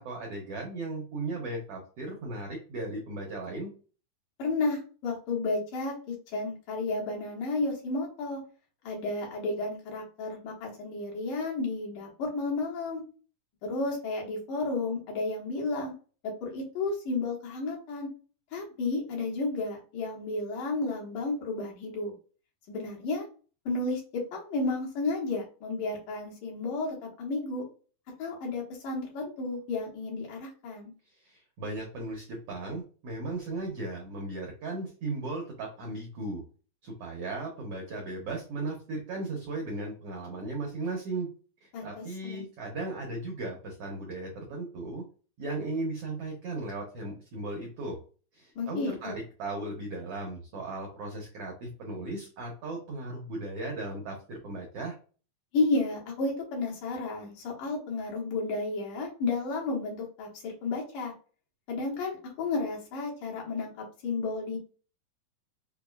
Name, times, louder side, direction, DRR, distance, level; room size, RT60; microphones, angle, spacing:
voice 1, 0.0-3.7 31.1-36.4 36.8-41.3 41.6-45.0 45.4-48.0 48.3-49.1 49.4-54.9, right 2 dB, 85° right, 0 dB, 1.3 m, -36 dB
voice 2, 4.4-8.4 8.8-13.0 13.6-15.9 16.2-18.1 18.5-22.1 22.7-23.3 23.7-27.6 28.2-30.9 41.7-42.4 48.6-49.2 55.5-61.1 61.7-64.6, left 3 dB, 75° left, -2 dB, 2.8 m, -32 dB
5.9 x 2.2 x 2.3 m, 0.37 s
omnidirectional pair, 3.9 m